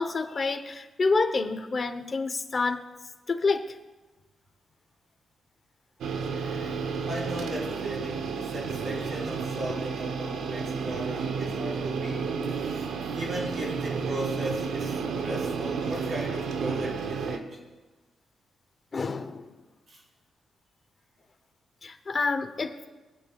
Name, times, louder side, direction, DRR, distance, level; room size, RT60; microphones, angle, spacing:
voice 1, 0.0-2.8 3.3-3.8 6.4-6.7 18.9-19.5 21.8-22.9, left 4 dB, 35° left, 7 dB, 0.9 m, -28 dB
sound 1, 6.0-17.4, right 5 dB, 90° right, 1.0 m, -31 dB
voice 2, 7.0-17.6 19.9-20.0, right 1 dB, 45° right, -5 dB, 4.6 m, -37 dB
23.5 x 8.9 x 2.4 m, 1.2 s
cardioid pair, 125°, 0 cm